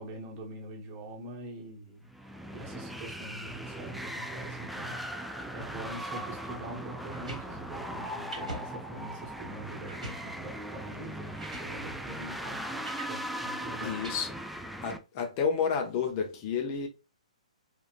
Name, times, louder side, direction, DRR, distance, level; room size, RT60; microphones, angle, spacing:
voice 1, 0.0-2.1 2.5-5.0 5.5-14.1, right 1 dB, 30° right, 1.1 m, -44 dB
sound 1, 2.1-15.0, right 1 dB, ahead, 0.3 m, -39 dB
sound 2, 7.0-7.4 8.3-8.6 9.1-9.2 9.9-10.2 11.0-11.1 11.4-11.7 12.8-13.1 14.0-14.1, right 1 dB, 75° right, 1.4 m, -41 dB
voice 2, 13.8-14.3 14.8-16.9, left 6 dB, 35° left, 0.8 m, -30 dB
3.7 x 2.9 x 2.5 m
figure-of-eight pair, 120°, 4 cm